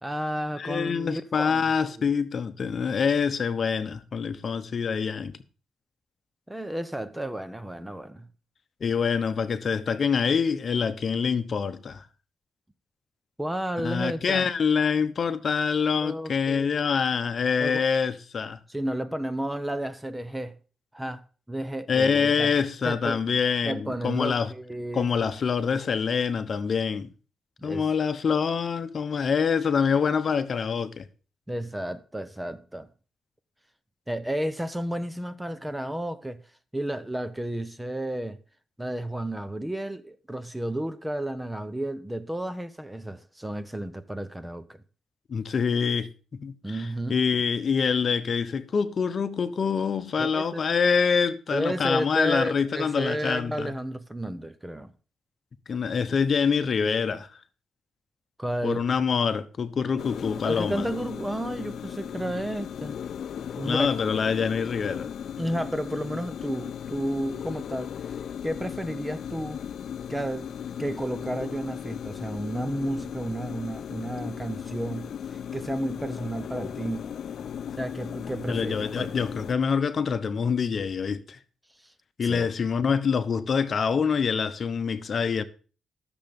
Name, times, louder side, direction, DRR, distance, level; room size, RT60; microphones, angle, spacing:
voice 1, 0.0-1.6 2.0-2.1 6.5-8.3 13.4-14.5 16.0-16.7 17.6-17.8 18.7-20.6 20.9-22.5 22.8-23.2 23.6-25.3 27.6-27.8 31.5-32.9 34.1-36.4 36.7-38.4 38.8-44.8 46.6-47.2 50.2-50.6 51.5-54.9 58.4-58.8 60.4-63.0 63.6-63.9 65.4-67.9 68.4-69.6 70.1-70.5 70.8-75.1 75.5-77.1 77.8-79.1 81.8-81.9 82.2-82.5, right 1 dB, 10° right, 0.7 m, -32 dB
voice 2, 0.6-5.4 8.8-12.0 13.8-18.6 21.9-24.5 24.9-27.1 27.6-31.1 45.3-46.1 46.4-53.7 55.7-57.4 58.6-60.9 63.6-65.1 78.5-81.4 82.2-85.4, left 6 dB, 50° left, 0.9 m, -25 dB
sound 1, 60.0-79.5, left 8 dB, 70° left, 0.5 m, -37 dB
12.5 x 6.9 x 5.2 m
cardioid pair, 110°, 0 cm